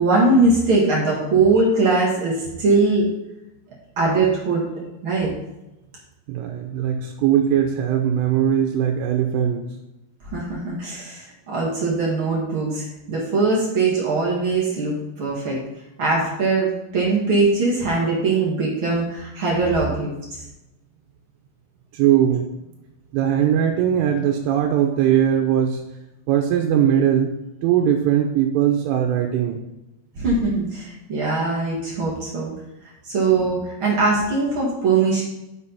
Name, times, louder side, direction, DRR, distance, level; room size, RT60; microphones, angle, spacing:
voice 1, 0.0-3.1 3.9-4.7 5.0-5.3 10.3-15.6 16.0-20.4 30.1-32.5 33.0-35.2, right 3 dB, 65° right, -5 dB, 1.3 m, -21 dB
voice 2, 6.3-9.6 21.9-22.5 23.1-25.8 26.3-27.3 27.6-29.6, right 9 dB, 85° right, 2 dB, 3.3 m, -20 dB
9.8 x 6.7 x 4.2 m, 0.94 s
omnidirectional pair, 5.7 m